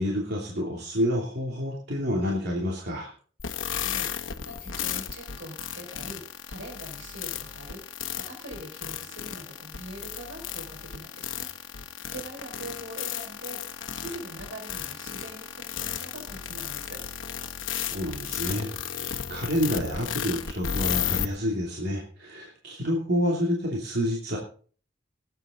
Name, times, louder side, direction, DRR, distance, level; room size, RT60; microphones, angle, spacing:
voice 1, 0.0-3.1 17.8-24.4, equal, 60° right, -2 dB, 2.9 m, -29 dB
sound 1, 3.4-21.3, left 8 dB, 85° left, 1.2 m, -34 dB
voice 2, 3.8-6.2 6.5-11.7 12.1-17.0, right 1 dB, 85° right, 3 dB, 5.3 m, -43 dB
19.0 x 9.1 x 3.9 m, 0.42 s
head